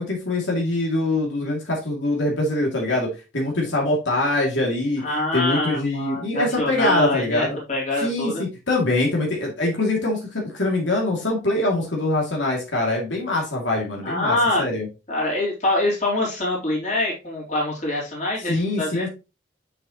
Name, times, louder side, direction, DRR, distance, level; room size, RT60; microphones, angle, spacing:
voice 1, 0.0-5.0 5.3-7.6 8.0-14.9 18.5-19.1, left 2 dB, 85° left, -1 dB, 2.4 m, -23 dB
voice 2, 5.0-8.4 14.0-14.6 15.1-19.1, left 1 dB, 40° left, -3 dB, 3.4 m, -24 dB
7.0 x 6.7 x 2.9 m, 0.28 s
head